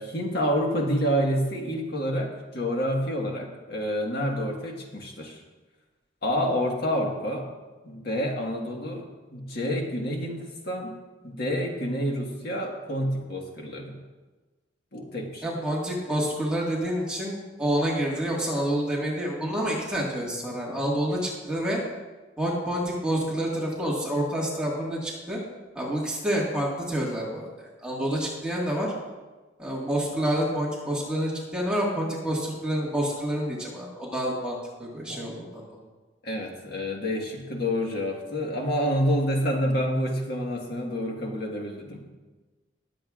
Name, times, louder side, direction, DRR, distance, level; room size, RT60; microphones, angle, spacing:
voice 1, 0.0-5.4 6.2-7.5 7.8-10.9 11.2-14.0 14.9-15.5 35.1-35.3 36.2-42.1, equal, 55° left, 0 dB, 1.6 m, -28 dB
voice 2, 15.4-21.8 22.4-25.4 25.8-28.9 29.6-35.6, right 1 dB, 5° right, -5 dB, 1.8 m, -28 dB
20.0 x 7.8 x 2.5 m, 1.2 s
head